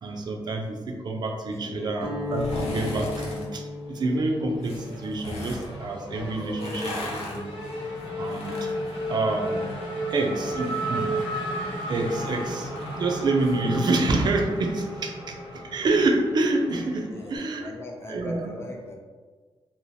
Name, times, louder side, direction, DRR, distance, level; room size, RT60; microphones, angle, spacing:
voice 1, 0.0-7.5 8.2-8.7 9.1-9.6 10.1-11.1 11.9-17.7 18.1-18.5, right 2 dB, 45° right, 1 dB, 0.4 m, -27 dB
voice 2, 1.4-2.3 17.0-18.9, left 1 dB, 25° left, 0 dB, 0.4 m, -41 dB
Guitar, 1.9-8.0, left 3 dB, 75° right, 0.8 m, -37 dB
sound 1, 2.2-3.4 4.6-5.7 6.4-9.9 10.2-13.6 13.9-14.0, left 1 dB, 85° left, 0.7 m, -38 dB
Race car auto racing / Accelerating revving vroom, 2.4-3.4 3.7-17.4, equal, 55° left, 0.9 m, -34 dB
2.7 x 2.0 x 3.0 m, 1.4 s
wide cardioid pair, 150°, 10 cm